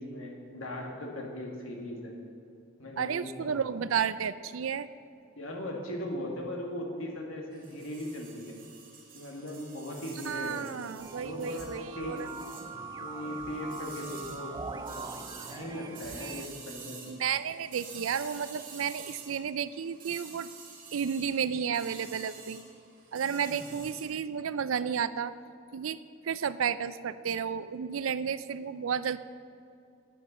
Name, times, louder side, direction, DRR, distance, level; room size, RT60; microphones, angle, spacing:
voice 1, 0.0-2.1 2.8-3.7 5.4-8.6 9.1-10.7 11.1-11.7 12.0-12.2 13.0-15.1 15.5-17.2 23.5-23.6, left 1 dB, 90° left, 0 dB, 2.2 m, -39 dB
voice 2, 3.0-4.9 10.3-12.3 17.1-20.5 20.9-22.6 23.1-25.3 25.7-26.0 26.2-29.2, right 7 dB, 85° right, 15 dB, 0.5 m, -32 dB
sound 1, 7.5-24.0, right 5 dB, 45° right, 2.1 m, -49 dB
sound 2, 11.0-16.5, right 3 dB, 20° right, 0.4 m, -42 dB
10.0 x 9.3 x 6.7 m, 2.6 s
head